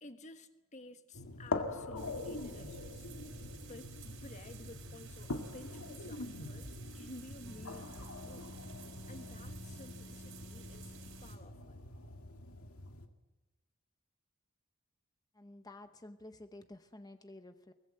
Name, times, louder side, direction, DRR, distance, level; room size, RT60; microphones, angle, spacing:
voice 1, 0.0-3.1 3.7-6.7 6.9-8.5 9.1-10.9 11.2-11.8, left 2 dB, 35° left, 8 dB, 1.4 m, -53 dB
sound 1, 1.1-13.1, left 2 dB, 90° left, 2.1 m, -43 dB
sound 2, 2.0-11.4, right 5 dB, 70° right, 4.7 m, -54 dB
Wind instrument woodwind instrument, 7.2-11.3, left 2 dB, 70° left, 3.8 m, -54 dB
voice 2, 15.3-17.7, left 1 dB, 20° left, 8 dB, 0.9 m, -52 dB
23.0 x 20.0 x 7.9 m, 1.1 s
head